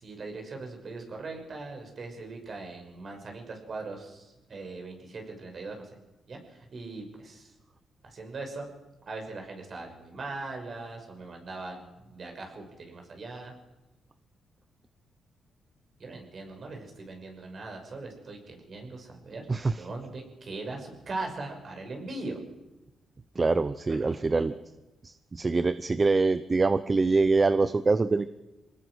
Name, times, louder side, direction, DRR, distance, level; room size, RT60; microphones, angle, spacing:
voice 1, 0.0-5.9 6.3-7.5 8.0-8.7 9.1-13.5 16.0-19.4 19.8-22.4 23.9-24.5, right 3 dB, 50° right, 2 dB, 6.1 m, -40 dB
voice 2, 19.5-19.8 23.4-24.5 25.0-28.3, right 3 dB, 30° right, 13 dB, 0.7 m, -24 dB
25.0 x 19.5 x 6.4 m, 1.0 s
cardioid pair, 90°, 0 cm